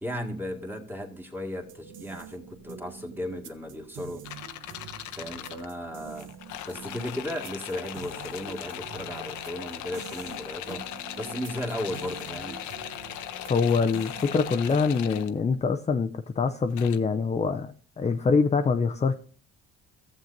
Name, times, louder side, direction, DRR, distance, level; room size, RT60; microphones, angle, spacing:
voice 1, 0.0-4.2 5.1-6.3 6.7-10.8 11.2-12.6, left 1 dB, 5° right, 1.8 m, -35 dB
sound 1, 1.6-15.0, right 7 dB, 70° right, 1.0 m, -46 dB
sound 2, 4.2-5.6 6.1-15.3 16.7-17.0, left 11 dB, 75° left, 0.7 m, -39 dB
voice 2, 13.5-19.1, left 5 dB, 20° left, 0.5 m, -24 dB
14.5 x 7.4 x 2.6 m
cardioid pair, 90°, 30 cm